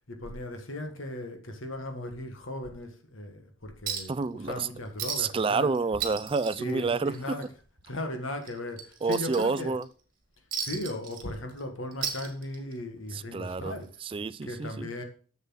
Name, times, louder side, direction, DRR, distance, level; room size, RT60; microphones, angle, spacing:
voice 1, 0.1-5.7 6.6-7.5 7.8-9.7 10.6-13.9 14.4-15.0, left 1 dB, 75° left, 1.7 m, -37 dB
Chink clink, 3.9-4.2 4.5-4.6 5.0-5.4 5.7-7.4 7.8-8.0 8.4-9.8 10.5-11.6 11.9-12.8 13.9-14.0, right 7 dB, 45° right, 1.8 m, -35 dB
voice 2, 4.1-4.7 5.2-7.1 9.0-9.9 13.1-13.7 14.0-14.9, right 4 dB, 25° right, 0.3 m, -29 dB
7.2 x 7.2 x 5.7 m
head